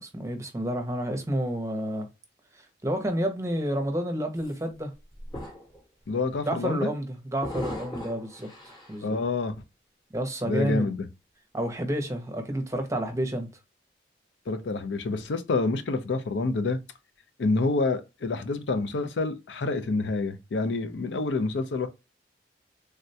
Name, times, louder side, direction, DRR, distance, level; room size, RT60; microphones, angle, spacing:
voice 1, 0.0-2.1 2.5-4.9 6.5-9.2 10.1-10.9 11.5-13.5, right 1 dB, 15° right, 0.6 m, -30 dB
sound 1, 4.4-4.5 5.1-5.8 6.2-6.4 7.4-9.0, left 1 dB, 25° left, 0.9 m, -38 dB
voice 2, 6.1-6.9 9.0-9.6 10.5-11.0 14.5-16.8 17.4-21.9, left 3 dB, 85° left, 0.5 m, -27 dB
3.5 x 2.2 x 2.6 m
head